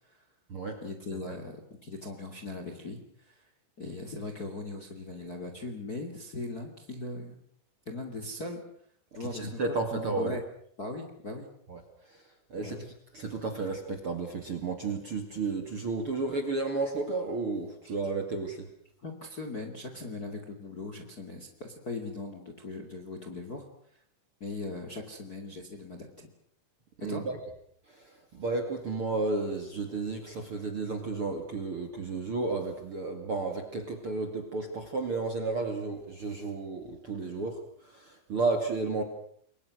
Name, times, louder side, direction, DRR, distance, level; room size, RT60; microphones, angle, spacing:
voice 1, 0.8-1.6 1.8-3.0 3.3-3.4 3.8-7.4 7.9-8.6 9.1-9.6 9.9-10.4 10.8-11.5 12.6-12.9 19.0-23.6 24.4-26.3 27.1-27.2, left 2 dB, 25° left, 5 dB, 2.2 m, -39 dB
voice 2, 9.2-10.4 11.7-11.8 12.1-12.2 12.5-12.9 13.1-18.7 27.0-27.4 27.9-39.0, right 3 dB, 40° right, 5 dB, 2.4 m, -32 dB
29.0 x 23.0 x 6.4 m, 0.64 s
omnidirectional pair, 5.1 m